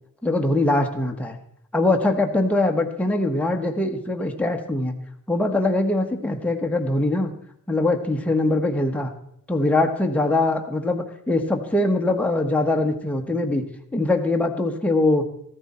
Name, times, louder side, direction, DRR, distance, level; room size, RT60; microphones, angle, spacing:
voice 1, 0.2-1.4 1.7-4.9 5.3-7.3 7.7-9.1 9.5-13.6 13.9-15.2, left 2 dB, 5° left, 2 dB, 1.1 m, -22 dB
14.0 x 13.5 x 4.3 m, 0.72 s
cardioid pair, 125°, 33 cm